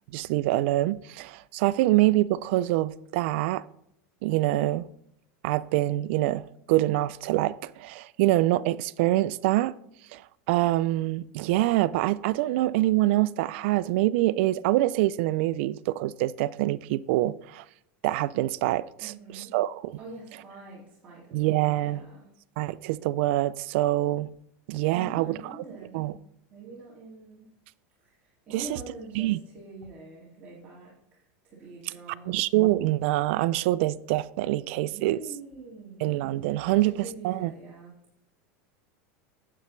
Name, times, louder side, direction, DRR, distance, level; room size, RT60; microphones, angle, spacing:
voice 1, 0.1-3.6 4.2-4.9 5.4-9.7 10.1-10.2 10.5-17.6 18.0-20.0 21.3-22.0 22.6-24.3 24.7-25.6 25.9-26.1 28.5-28.7 29.2-29.4 32.3-35.2 36.0-36.9 37.2-37.5, right 16 dB, 60° right, 0.3 m, -25 dB
voice 2, 19.0-19.6 20.0-22.3 24.9-27.5 28.0-30.9 31.5-32.4 34.9-36.0 36.4-37.9, right 3 dB, 20° right, 2.3 m, -45 dB
9.8 x 7.7 x 3.2 m
supercardioid pair, 155°, 7 cm